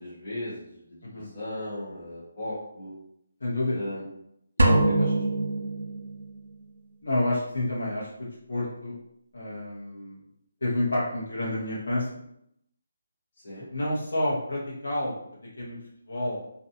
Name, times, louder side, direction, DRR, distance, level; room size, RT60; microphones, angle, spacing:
voice 1, 0.0-2.9 3.7-4.1 4.6-5.3 13.4-13.7, left 1 dB, 35° left, -7 dB, 1.2 m, -37 dB
voice 2, 3.4-3.8 7.0-8.1 8.5-9.0 9.3-10.2 10.6-12.1 13.7-15.2 15.6-15.8 16.1-16.4, left 1 dB, 70° left, -6 dB, 0.8 m, -29 dB
sound 1, 4.6-6.4, right 1 dB, 80° right, 0.5 m, -23 dB
2.5 x 2.2 x 2.7 m, 0.75 s
hypercardioid pair, 175°, 0 cm